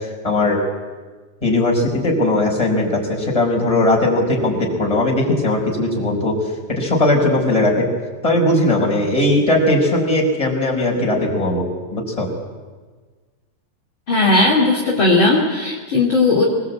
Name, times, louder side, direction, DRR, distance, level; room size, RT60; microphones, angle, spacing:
voice 1, 0.2-0.6 1.4-6.3 6.7-7.9 8.2-11.7 11.9-12.3, left 1 dB, 5° left, -2 dB, 4.9 m, -18 dB
voice 2, 14.1-16.4, left 2 dB, 30° left, -2 dB, 2.8 m, -16 dB
25.0 x 20.5 x 8.6 m, 1.4 s
omnidirectional pair, 5.2 m